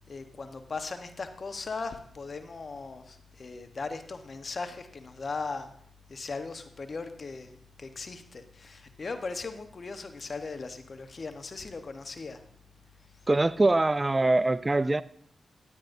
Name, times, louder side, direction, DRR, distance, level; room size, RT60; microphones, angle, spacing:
voice 1, 0.1-5.7 6.1-12.4, left 4 dB, 55° left, 1.1 m, -38 dB
voice 2, 13.3-15.0, right 2 dB, 30° right, 0.4 m, -23 dB
13.0 x 9.4 x 2.6 m
supercardioid pair, 45°, 0 cm